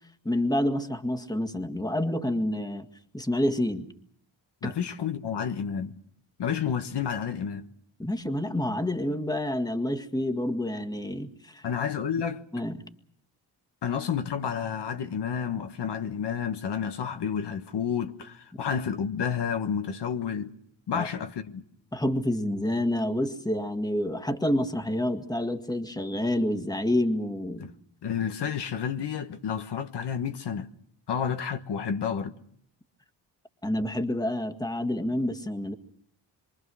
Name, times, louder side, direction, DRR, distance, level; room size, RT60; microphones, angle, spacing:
voice 1, 0.3-3.9 4.6-4.8 8.0-11.7 12.5-12.8 20.9-21.1 21.9-27.7 33.6-35.7, left 1 dB, 10° left, 1.9 m, -28 dB
voice 2, 4.6-6.0 6.4-7.7 11.6-12.4 13.8-20.5 20.9-21.6 27.6-27.7 28.0-30.7 31.1-32.3, left 7 dB, 65° left, 1.4 m, -30 dB
26.0 x 24.0 x 6.3 m
cardioid pair, 80°, 44 cm